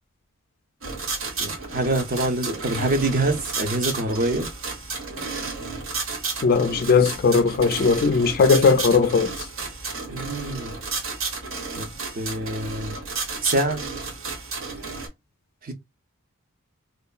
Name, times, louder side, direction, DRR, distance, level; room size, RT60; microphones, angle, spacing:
sound 1, 0.8-15.1, right 4 dB, 65° right, 0.9 m, -32 dB
voice 1, 1.4-4.5 10.1-10.7 11.8-11.9 12.2-12.9 13.4-13.8 15.6-15.7, right 2 dB, 40° right, 0.6 m, -25 dB
voice 2, 6.4-9.3, left 5 dB, 45° left, 0.3 m, -18 dB
2.8 x 2.2 x 2.3 m
head